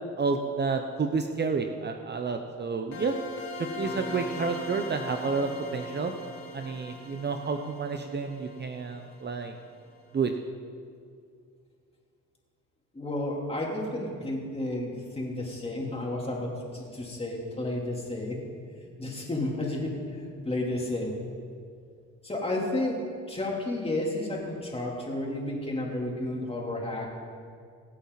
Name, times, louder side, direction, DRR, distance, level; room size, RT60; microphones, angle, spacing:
voice 1, 0.2-3.1 3.6-6.1 6.5-9.5 10.1-10.3, right 4 dB, 35° right, 5 dB, 0.9 m, -30 dB
sound 1, 2.9-9.6, left 1 dB, 65° left, 3.6 m, -40 dB
voice 2, 12.9-18.4 18.7-21.2 22.2-27.1, left 1 dB, 20° left, -2 dB, 3.5 m, -32 dB
24.5 x 8.5 x 4.1 m, 2.2 s
cardioid pair, 90°, 30 cm